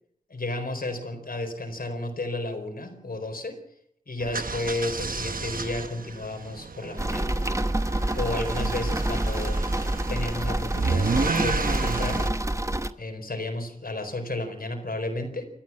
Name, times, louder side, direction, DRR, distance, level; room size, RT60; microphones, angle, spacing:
voice 1, 0.3-3.6 4.1-7.4 8.1-9.7 10.1-12.3 13.0-15.4, left 2 dB, 85° left, 6 dB, 4.4 m, -32 dB
sound 1, 4.2-12.3, right 4 dB, 75° right, 1.1 m, -31 dB
sound 2, 7.0-12.9, right 1 dB, 20° right, 1.0 m, -27 dB
28.5 x 14.0 x 7.5 m, 0.71 s
wide cardioid pair, 60°, 15 cm